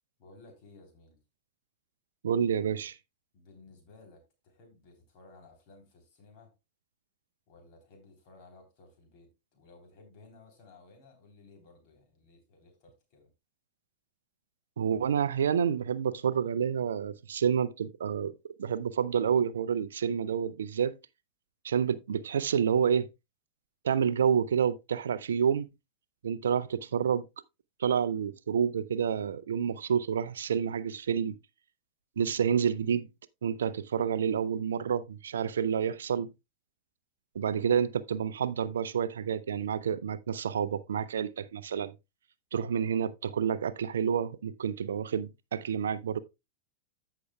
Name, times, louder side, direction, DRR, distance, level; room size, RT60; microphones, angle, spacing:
voice 1, 0.2-1.2 3.3-6.5 7.5-13.3, left 3 dB, 45° left, 3.3 m, -56 dB
voice 2, 2.2-3.0 14.8-18.3 18.6-21.0 21.6-23.1 23.8-25.7 26.2-27.2 27.8-31.3 32.2-33.1 33.4-36.3 37.4-41.9 42.5-46.2, right 7 dB, 65° right, 0.4 m, -29 dB
14.5 x 5.7 x 2.3 m
figure-of-eight pair, 90°, 0 cm